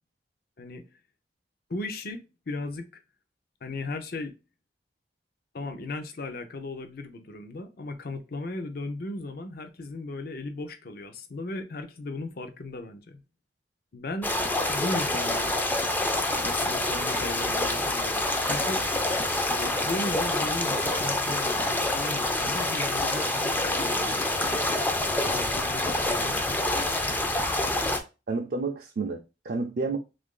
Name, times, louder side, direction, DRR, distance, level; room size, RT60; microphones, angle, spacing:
voice 1, 1.7-3.0 3.6-4.3 5.5-13.2 13.9-14.3 14.7-15.9 16.4-18.8 19.6-24.7 25.0-26.5, left 2 dB, 55° left, 0.6 m, -36 dB
sound 1, 14.2-28.0, left 1 dB, 10° left, 0.4 m, -27 dB
Sawing, 15.2-15.8 16.3-24.0, left 3 dB, 75° left, 1.2 m, -47 dB
voice 2, 28.3-30.0, right 3 dB, 55° right, 0.4 m, -30 dB
3.1 x 2.5 x 3.7 m
head